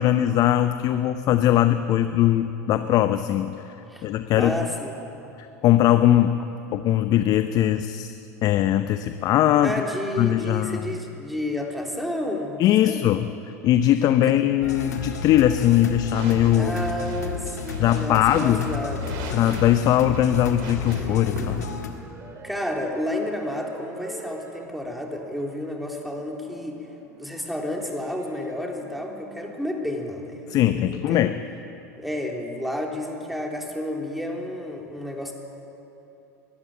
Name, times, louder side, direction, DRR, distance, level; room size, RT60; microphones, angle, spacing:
voice 1, 0.0-3.5 4.0-4.6 5.4-6.3 6.7-8.1 8.4-9.7 10.2-10.9 12.6-13.2 13.6-16.7 17.8-18.7 19.3-21.7 30.5-31.3, left 12 dB, 45° left, 10 dB, 0.7 m, -20 dB
voice 2, 4.3-4.9 9.6-12.6 12.9-13.1 14.2-14.3 16.6-19.4 21.7-21.8 22.4-26.8 27.2-31.3 32.0-35.3, left 1 dB, ahead, 1 dB, 3.4 m, -31 dB
sound 1, 14.6-21.9, left 6 dB, 85° left, 1.7 m, -33 dB
sound 2, 16.0-21.6, right 3 dB, 55° right, 4.0 m, -39 dB
sound 3, 20.3-29.7, right 3 dB, 35° right, 2.7 m, -45 dB
21.5 x 13.5 x 9.2 m, 2.9 s
hypercardioid pair, 80°, 9 cm